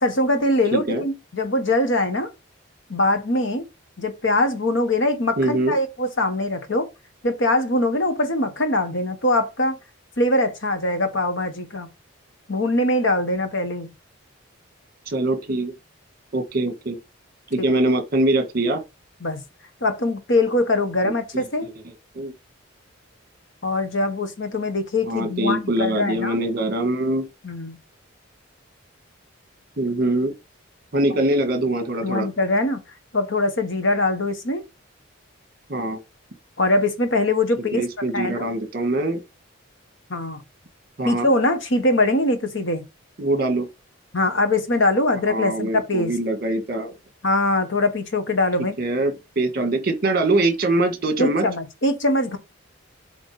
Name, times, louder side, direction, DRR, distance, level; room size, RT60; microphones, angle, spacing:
voice 1, 0.0-2.3 2.9-3.7 4.0-6.9 7.2-9.8 10.2-11.9 12.5-13.9 17.6-17.7 19.2-19.4 19.8-21.7 23.6-26.4 27.4-27.8 31.1-31.2 32.0-32.8 33.1-34.6 36.6-37.8 38.1-38.5 40.1-40.4 41.0-42.8 44.1-46.1 47.2-48.8 51.2-52.4, left 2 dB, 60° left, 1.4 m, -22 dB
voice 2, 0.7-1.0 5.4-5.8 15.1-15.7 16.3-17.0 17.5-18.8 21.0-21.1 21.6-21.7 22.1-22.3 25.1-27.2 29.8-30.3 30.9-32.3 35.7-36.0 37.7-39.2 41.0-41.3 43.2-43.7 45.1-46.9 48.8-51.5, right 2 dB, 45° right, 1.7 m, -23 dB
7.9 x 3.5 x 5.0 m
head